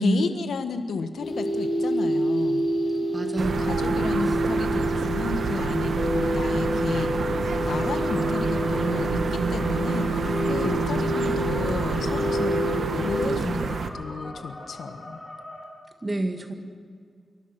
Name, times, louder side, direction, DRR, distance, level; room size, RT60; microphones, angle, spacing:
voice 1, 0.0-2.6 3.6-7.2 7.7-15.2, left 5 dB, 85° left, 8 dB, 1.6 m, -32 dB
sound 1, 1.2-13.3, equal, 35° left, 4.2 m, -27 dB
voice 2, 3.1-4.4 16.0-16.5, right 2 dB, 20° right, 5 dB, 2.1 m, -28 dB
sound 2, 3.4-13.9, right 5 dB, 65° right, 1.5 m, -28 dB
sound 3, 7.5-15.6, left 1 dB, 20° left, 4.0 m, -41 dB
26.0 x 24.0 x 6.4 m, 2.1 s
wide cardioid pair, 160°, 0 cm